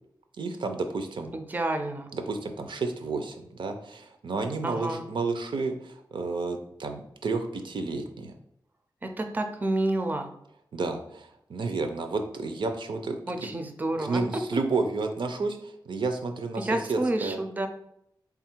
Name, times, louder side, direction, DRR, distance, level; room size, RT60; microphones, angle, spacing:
voice 1, 0.4-1.3 2.1-8.3 10.7-13.2 14.0-17.4, right 3 dB, 80° right, 6 dB, 0.5 m, -31 dB
voice 2, 1.3-2.1 4.6-5.0 9.0-10.3 13.3-14.2 16.6-17.7, right 2 dB, 20° right, 6 dB, 0.4 m, -29 dB
3.4 x 2.4 x 4.4 m, 0.76 s
wide cardioid pair, 110°, 8 cm